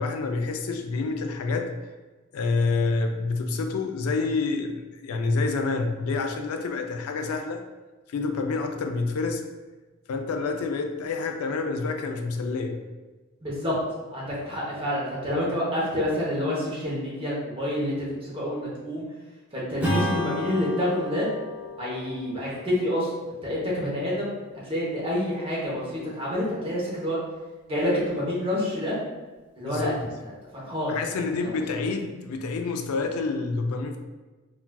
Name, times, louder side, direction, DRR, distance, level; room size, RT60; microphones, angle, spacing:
voice 1, 0.0-1.7 2.3-7.6 8.1-9.4 10.1-12.8 29.6-30.0 30.9-34.0, left 3 dB, 85° left, 5 dB, 0.4 m, -28 dB
voice 2, 13.4-13.7 14.1-19.0 19.5-21.3 21.8-23.1 23.4-24.3 24.6-27.2 27.7-29.0 29.6-29.9 30.2-30.9 31.4-31.9, left 1 dB, 25° right, -6 dB, 0.9 m, -28 dB
Strum, 19.8-24.7, left 1 dB, 5° right, 0.5 m, -33 dB
4.0 x 2.3 x 2.2 m, 1.2 s
head